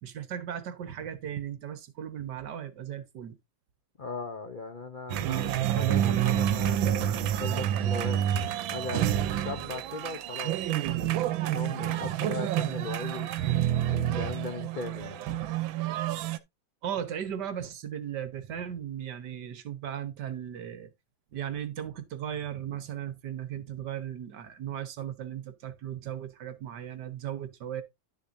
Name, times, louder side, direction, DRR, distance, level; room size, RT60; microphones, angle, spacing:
voice 1, 0.0-3.4 16.8-20.9 21.3-27.8, right 9 dB, 65° right, 1.6 m, -37 dB
voice 2, 4.0-8.3 8.7-9.1 9.4-13.3 13.9-15.3, left 3 dB, 75° left, 0.4 m, -38 dB
sound 1, 5.1-16.4, right 11 dB, 90° right, 1.5 m, -28 dB
11.0 x 6.7 x 2.6 m
omnidirectional pair, 2.1 m